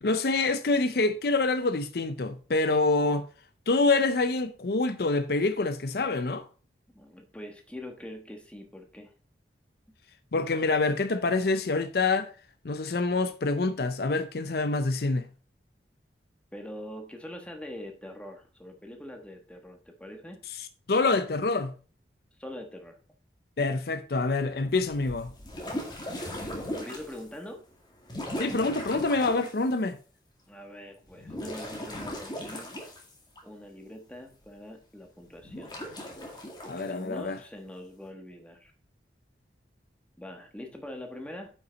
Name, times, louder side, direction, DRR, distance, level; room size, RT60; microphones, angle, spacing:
voice 1, 0.0-3.3 3.7-6.5 10.3-12.3 12.6-15.3 20.6-21.7 23.6-25.3 28.4-30.0 36.7-37.4, left 3 dB, 60° left, 0.6 m, -26 dB
voice 2, 6.9-9.1 16.5-20.4 22.4-23.0 26.7-27.6 30.5-32.7 33.4-35.7 36.6-38.7 40.2-41.5, left 1 dB, 5° left, 1.4 m, -43 dB
sound 1, 24.7-27.3 28.0-29.6 31.1-33.4 35.4-36.8, left 1 dB, 25° left, 2.1 m, -37 dB
9.1 x 5.7 x 3.9 m
head